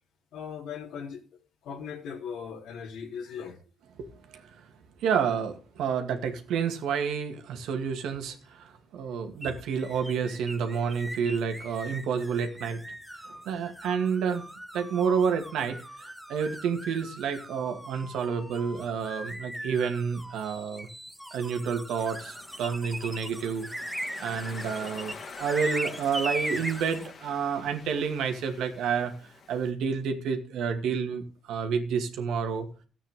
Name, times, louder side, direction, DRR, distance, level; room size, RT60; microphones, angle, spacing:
voice 1, 0.3-1.2 1.6-3.6 9.9-10.1 13.7-14.1 22.0-22.2 27.4-27.5 28.1-28.2, left 7 dB, 85° left, 1 dB, 3.4 m, -40 dB
voice 2, 4.0-4.4 5.0-12.8 13.5-14.4 14.7-20.9 21.3-23.7 24.2-29.1 29.5-32.7, right 6 dB, 85° right, 6 dB, 2.1 m, -29 dB
sound 1, 9.4-27.1, equal, 5° right, 0.9 m, -39 dB
Waves surf, 22.0-29.7, left 5 dB, 55° left, 2.3 m, -47 dB
14.0 x 8.7 x 3.7 m, 0.36 s
cardioid pair, 90°, 0 cm